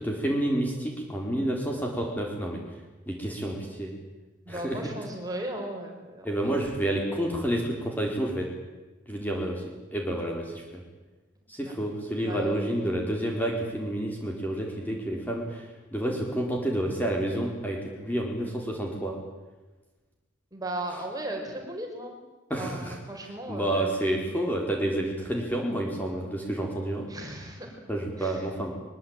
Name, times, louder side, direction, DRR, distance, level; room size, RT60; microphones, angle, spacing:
voice 1, 0.0-2.6 3.1-3.9 4.5-4.8 6.2-8.5 9.1-9.6 9.9-10.8 11.5-15.6 15.9-19.2 22.5-22.9 23.5-27.1 27.9-28.7, right 1 dB, 10° left, 0 dB, 4.3 m, -29 dB
voice 2, 4.4-6.5 11.6-11.7 12.2-13.1 20.5-22.2 22.6-24.3 27.1-27.8 28.2-28.5, right 1 dB, 15° right, 2 dB, 5.0 m, -36 dB
23.5 x 23.0 x 9.0 m, 1.2 s
head